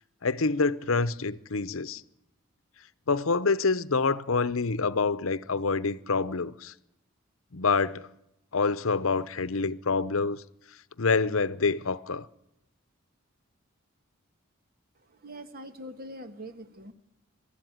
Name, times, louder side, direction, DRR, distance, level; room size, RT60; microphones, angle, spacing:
voice 1, 0.2-2.0 3.1-6.7 7.5-8.1 8.5-10.4 11.0-12.3, left 4 dB, 70° left, 0.8 m, -26 dB
voice 2, 14.9-16.9, equal, 45° right, 1.6 m, -43 dB
23.5 x 13.0 x 9.2 m
head